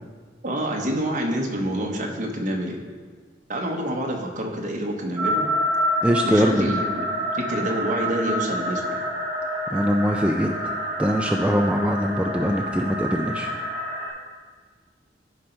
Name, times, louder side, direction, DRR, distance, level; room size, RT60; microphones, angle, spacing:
voice 1, 0.4-2.8 3.5-5.4 6.2-7.0 7.3-9.1, equal, 45° right, 0 dB, 1.3 m, -27 dB
sound 1, 5.2-14.1, equal, 25° right, 2.5 m, -28 dB
voice 2, 6.0-6.7 9.7-10.7 11.0-13.5, equal, 5° right, 2 dB, 0.4 m, -22 dB
12.0 x 5.3 x 4.6 m, 1.5 s
head